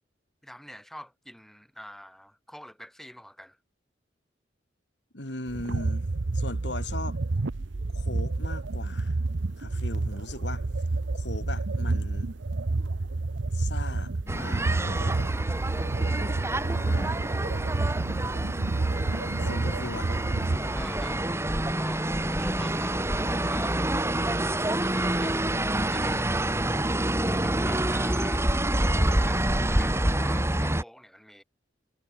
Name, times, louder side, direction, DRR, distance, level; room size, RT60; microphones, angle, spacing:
voice 1, 0.4-3.6 19.1-19.4 20.7-23.8 24.4-26.7 27.2-28.5 29.1-31.4, equal, ahead, 5.5 m, -45 dB
voice 2, 5.1-6.1 6.3-7.2 7.9-9.2 9.6-10.7 11.1-12.3 13.5-15.2 16.6-17.2 19.5-20.2, left 2 dB, 70° left, 7.0 m, -38 dB
sound 1, 5.5-21.1, right 3 dB, 90° right, 0.8 m, -29 dB
sound 2, 14.3-30.8, right 1 dB, 15° right, 2.2 m, -27 dB
head